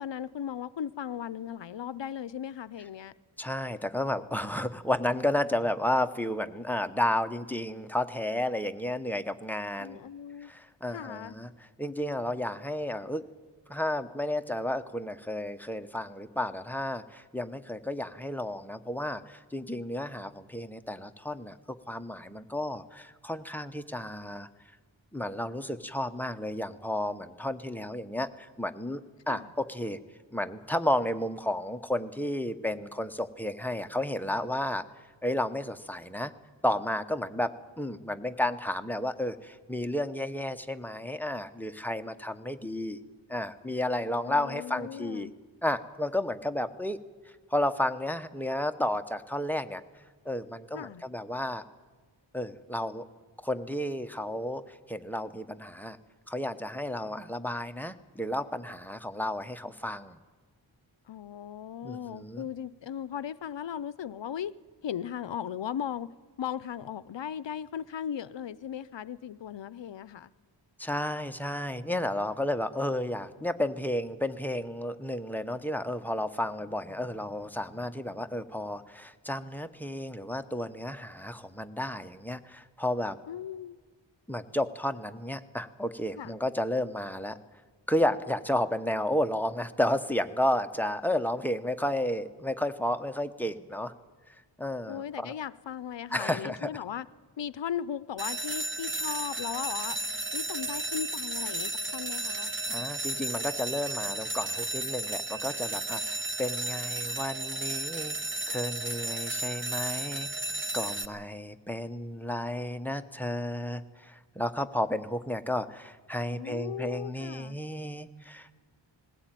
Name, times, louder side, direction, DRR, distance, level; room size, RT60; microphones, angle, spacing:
voice 1, 0.0-3.1 9.8-10.5 10.9-11.4 29.3-29.5 44.3-45.3 50.7-51.0 61.1-64.5 64.8-66.1 66.4-70.3 83.3-83.8 86.2-86.3 94.9-97.1 97.4-100.0 100.3-102.5 116.3-117.6, left 9 dB, 70° left, 0.7 m, -37 dB
voice 2, 3.4-10.0 10.4-11.5 11.8-13.2 13.7-24.5 25.1-30.0 30.3-34.8 35.2-36.3 36.6-43.0 43.3-45.3 45.6-47.0 47.2-49.8 50.2-51.6 52.3-53.0 53.4-56.0 56.3-60.2 61.8-62.5 70.8-83.2 84.3-87.4 87.9-93.9 94.3-95.3 96.1-96.7 102.7-108.2 108.5-110.3 110.7-118.5, left 1 dB, 5° left, 0.9 m, -32 dB
sound 1, 98.2-111.0, right 2 dB, 25° right, 0.9 m, -33 dB
20.0 x 16.0 x 9.1 m
wide cardioid pair, 100°, 46 cm